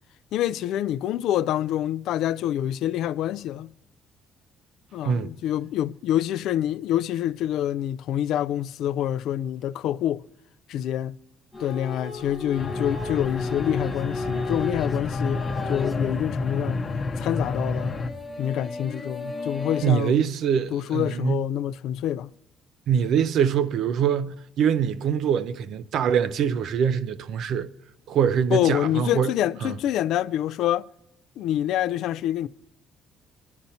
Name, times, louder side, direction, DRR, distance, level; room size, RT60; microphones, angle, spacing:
voice 1, 0.3-3.7 4.9-10.2 10.7-11.2 11.6-16.8 17.2-18.0 18.4-20.2 20.7-22.3 28.5-30.9 31.4-32.5, left 11 dB, 70° left, 0.3 m, -26 dB
sound 1, 11.5-19.9, left 2 dB, 5° left, 1.0 m, -35 dB
sound 2, 12.6-18.1, left 3 dB, 25° left, 0.8 m, -29 dB
voice 2, 19.8-21.4 22.9-27.7 28.1-29.3 29.6-29.7, right 8 dB, 60° right, 0.5 m, -24 dB
22.5 x 11.5 x 2.8 m
cardioid pair, 150°, 0 cm